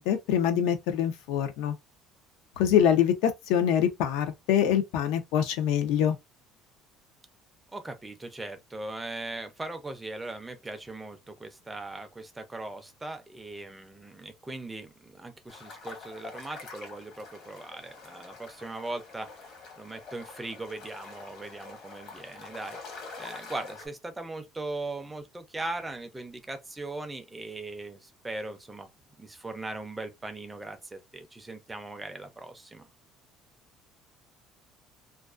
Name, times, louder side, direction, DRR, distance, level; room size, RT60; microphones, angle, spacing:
voice 1, 0.0-1.8 2.6-6.2, left 9 dB, 90° left, 0.5 m, -25 dB
voice 2, 7.7-19.5 19.8-28.9 29.2-32.9, right 2 dB, 10° right, 0.4 m, -39 dB
sound 1, 15.5-23.9, left 4 dB, 45° left, 0.9 m, -46 dB
2.3 x 2.2 x 2.4 m
cardioid pair, 175°, 0 cm